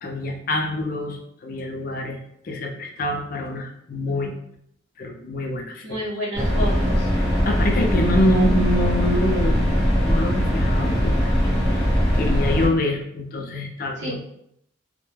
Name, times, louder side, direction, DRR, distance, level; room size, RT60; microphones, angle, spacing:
voice 1, 0.0-2.2 2.4-4.3 5.0-6.0 7.4-11.9 12.1-14.2, left 1 dB, 45° left, 3 dB, 0.4 m, -26 dB
voice 2, 5.8-7.1 14.0-14.2, equal, 65° right, -6 dB, 0.8 m, -30 dB
sound 1, 6.3-12.7, equal, 5° left, 1.1 m, -20 dB
2.2 x 2.1 x 3.1 m, 0.74 s
head